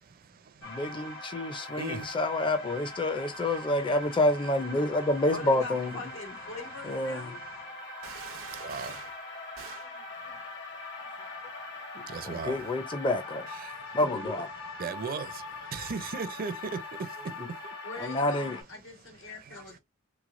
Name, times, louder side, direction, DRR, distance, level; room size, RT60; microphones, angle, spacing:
sound 1, 0.6-18.6, left 2 dB, 60° left, 1.3 m, -42 dB
voice 1, 0.6-5.9 6.8-7.3 12.2-13.5 13.9-14.5 18.0-18.6, left 1 dB, 25° left, 0.5 m, -28 dB
voice 2, 5.3-7.4 13.9-14.0 17.8-19.8, left 2 dB, 85° left, 1.5 m, -42 dB
sound 2, 8.0-9.2 9.6-9.9, right 7 dB, 90° right, 0.6 m, -45 dB
voice 3, 8.6-8.9 12.1-12.6 14.8-15.3 15.7-16.5, right 5 dB, 45° right, 0.4 m, -35 dB
3.3 x 3.2 x 2.5 m
head